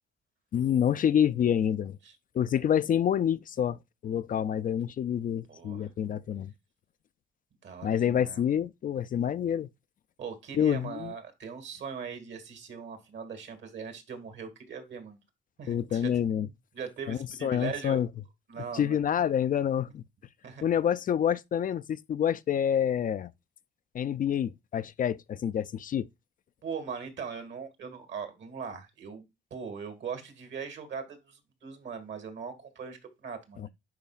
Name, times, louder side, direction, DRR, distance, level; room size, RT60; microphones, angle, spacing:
voice 1, 0.5-2.0 2.3-6.5 7.8-9.7 10.5-11.1 15.7-16.5 17.1-18.1 18.7-20.0 20.6-23.3 23.9-26.1 33.6-33.7, left 9 dB, 45° left, 0.4 m, -27 dB
voice 2, 5.5-5.9 7.6-8.4 10.2-15.2 15.6-16.1 16.4-18.0 18.5-19.0 20.4-20.6 26.6-29.2 29.5-33.7, right 6 dB, 65° right, 2.0 m, -40 dB
10.5 x 4.1 x 2.3 m
cardioid pair, 90°, 20 cm